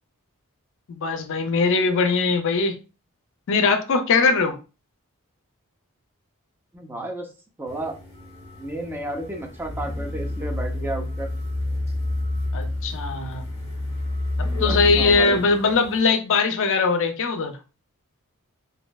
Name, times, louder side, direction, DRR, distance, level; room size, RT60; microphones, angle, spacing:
voice 1, 0.9-2.8 3.5-4.5 12.5-13.4 14.4-17.5, left 4 dB, 60° left, 0.5 m, -21 dB
voice 2, 6.7-7.3 7.6-8.0 8.6-11.3 14.6-15.4, right 1 dB, 10° right, 0.5 m, -32 dB
sound 1, 7.7-16.0, left 1 dB, 25° left, 0.9 m, -29 dB
3.0 x 2.6 x 2.3 m
head